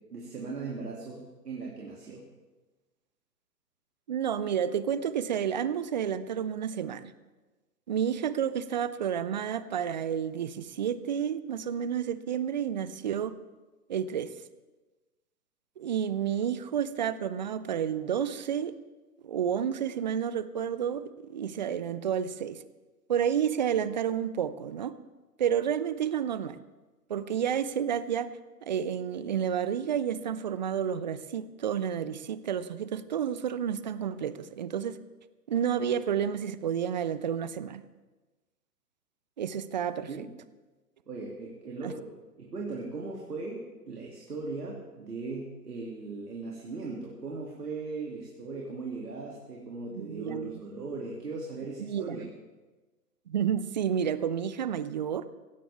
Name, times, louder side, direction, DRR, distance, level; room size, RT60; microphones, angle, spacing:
voice 1, 0.1-2.2 40.1-40.3 41.1-42.1 42.4-43.6 43.9-52.3, right 3 dB, 75° right, -2 dB, 2.7 m, -38 dB
voice 2, 4.1-7.1 7.9-13.3 13.9-14.3 15.8-18.7 19.2-22.6 23.1-25.0 25.4-26.6 27.1-28.3 28.6-35.0 35.5-37.8 39.4-40.1 41.8-41.9 49.9-50.5 51.8-52.3 53.3-55.3, right 8 dB, 30° right, 15 dB, 0.4 m, -30 dB
17.0 x 16.0 x 3.5 m, 1.2 s
figure-of-eight pair, 120°, 47 cm